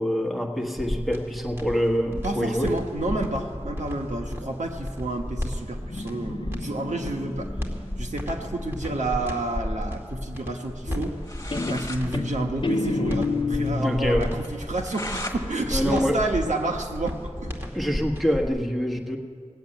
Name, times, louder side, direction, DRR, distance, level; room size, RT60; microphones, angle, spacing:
voice 1, 0.0-2.8 13.8-14.3 15.7-16.2 17.7-19.2, equal, ahead, 2 dB, 1.4 m, -25 dB
sound 1, 0.6-18.5, left 1 dB, 20° right, 2.3 m, -33 dB
voice 2, 2.2-7.5 8.0-11.1 11.7-17.6 18.0-18.1, right 2 dB, 90° right, 2 dB, 1.3 m, -30 dB
Guitar, 5.7-9.3 10.9-11.3 11.5-14.5, left 3 dB, 45° left, 0.7 m, -30 dB
sound 2, 11.2-12.0 12.4-12.5 12.7-12.8 13.2-13.3 13.7-13.8 14.4-15.4 15.8-17.1, left 1 dB, 25° left, 1.5 m, -37 dB
17.5 x 8.2 x 8.9 m, 2.1 s
wide cardioid pair, 55°, 12 cm